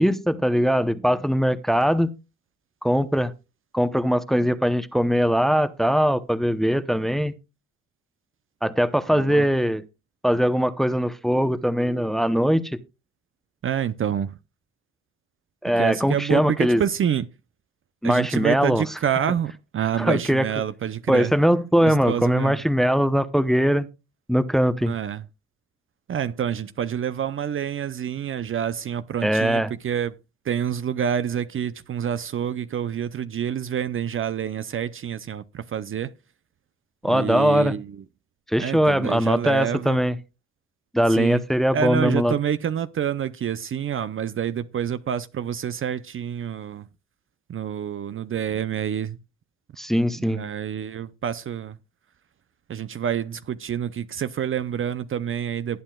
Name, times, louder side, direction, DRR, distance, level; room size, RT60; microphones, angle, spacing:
voice 1, 0.0-2.1 2.8-3.3 3.7-7.3 8.6-9.8 10.2-12.8 15.6-16.8 18.0-18.8 20.0-20.5 21.1-23.9 24.3-24.9 29.2-29.7 37.0-37.7 38.5-40.2 40.9-42.3 49.8-50.4, equal, ahead, 0.8 m, -21 dB
voice 2, 9.1-9.5 13.6-14.3 15.8-17.3 18.0-21.3 21.8-22.6 24.9-25.2 26.1-30.2 30.5-36.1 37.1-38.0 38.6-40.0 41.1-41.4 41.7-46.9 47.5-49.2 50.2-51.8 52.7-55.8, right 8 dB, 45° right, 0.6 m, -27 dB
18.5 x 8.9 x 2.3 m
cardioid pair, 90°, 30 cm